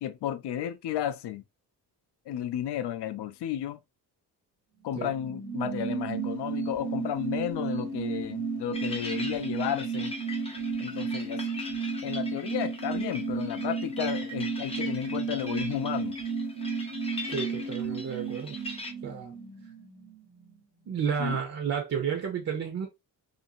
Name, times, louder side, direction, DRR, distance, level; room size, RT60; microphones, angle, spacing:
voice 1, 0.0-1.4 2.3-3.8 4.8-10.1 10.8-11.4 12.0-16.1 21.2-21.4, left 10 dB, 80° left, 0.5 m, -33 dB
sound 1, 5.1-20.2 20.4-20.5, right 5 dB, 85° right, 1.1 m, -33 dB
sound 2, 8.7-18.9, left 2 dB, 15° left, 0.4 m, -41 dB
voice 2, 17.3-18.6 19.0-19.3 20.9-22.9, right 7 dB, 40° right, 0.5 m, -31 dB
2.6 x 2.6 x 2.6 m
wide cardioid pair, 170°, 41 cm